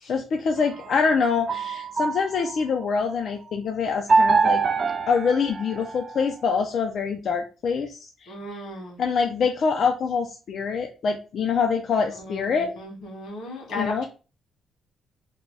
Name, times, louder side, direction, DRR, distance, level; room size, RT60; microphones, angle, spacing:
voice 1, 0.1-4.6 5.1-8.6 9.0-12.7 13.7-14.0, left 5 dB, 55° left, 4 dB, 0.4 m, -25 dB
sound 1, 0.6-2.8 4.1-6.3, right 4 dB, 35° right, 0.3 m, -24 dB
voice 2, 8.3-9.0 12.2-14.0, left 2 dB, 85° left, -1 dB, 1.8 m, -36 dB
3.3 x 2.2 x 3.9 m, 0.33 s
cardioid pair, 130°, 0 cm